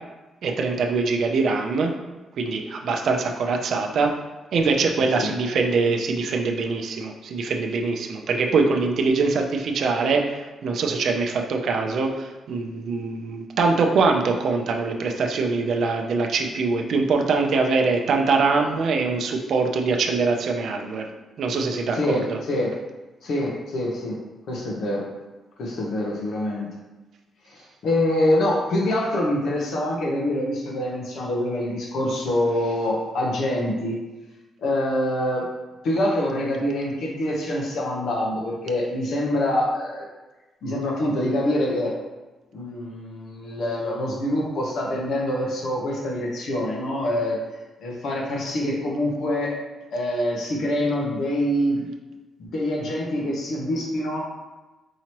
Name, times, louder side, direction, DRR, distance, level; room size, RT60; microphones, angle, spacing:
voice 1, 0.4-1.9 2.4-4.1 4.5-21.1 21.4-22.4, right 4 dB, 60° right, 3 dB, 0.5 m, -23 dB
voice 2, 21.9-22.7 23.2-24.2 24.5-25.1 25.6-26.7 27.5-34.0 34.6-35.5 35.8-40.1 40.6-41.9 42.5-47.4 47.8-49.6 49.9-51.9 52.4-54.3, left 1 dB, 65° left, -2 dB, 0.8 m, -25 dB
4.7 x 2.9 x 2.9 m, 1.2 s
wide cardioid pair, 160°, 0 cm